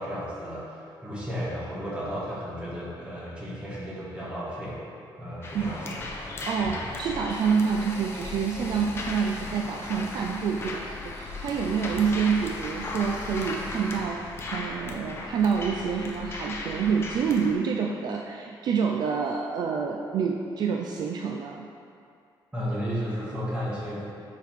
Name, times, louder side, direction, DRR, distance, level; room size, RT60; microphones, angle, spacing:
voice 1, 0.0-4.8 5.2-6.0 22.5-24.1, equal, 10° right, -7 dB, 1.3 m, -33 dB
sound 1, 5.4-17.5, left 2 dB, 30° left, 0.6 m, -36 dB
voice 2, 6.5-21.7, right 6 dB, 55° right, 1 dB, 0.3 m, -27 dB
6.7 x 4.6 x 3.5 m, 2.4 s
cardioid pair, 170°, 8 cm